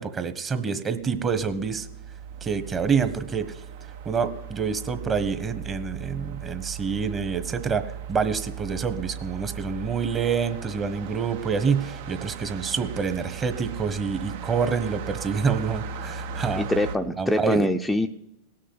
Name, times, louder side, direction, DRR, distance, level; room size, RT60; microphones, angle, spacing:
voice 1, 0.0-1.9 2.4-3.6 4.0-7.8 8.1-16.7 17.2-17.7, right 6 dB, 25° right, 10 dB, 1.3 m, -27 dB
sound 1, 0.9-17.0, right 6 dB, 65° right, 1.0 m, -37 dB
voice 2, 16.6-18.1, left 1 dB, 5° left, 5 dB, 0.6 m, -24 dB
17.5 x 6.5 x 7.9 m, 0.88 s
hypercardioid pair, 115°, 0 cm